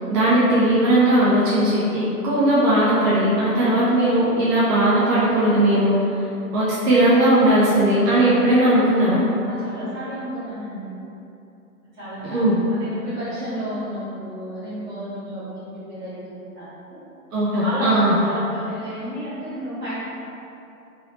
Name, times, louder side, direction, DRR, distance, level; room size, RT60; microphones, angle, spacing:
voice 1, 0.1-5.9 6.5-9.2 12.2-12.6 17.3-18.1, right 1 dB, 75° right, -9 dB, 0.9 m, -18 dB
voice 2, 9.4-10.9 12.0-15.5 15.7-17.0 17.5-19.9, equal, 15° right, -19 dB, 0.9 m, -31 dB
3.9 x 2.7 x 2.9 m, 2.8 s
hypercardioid pair, 165°, 47 cm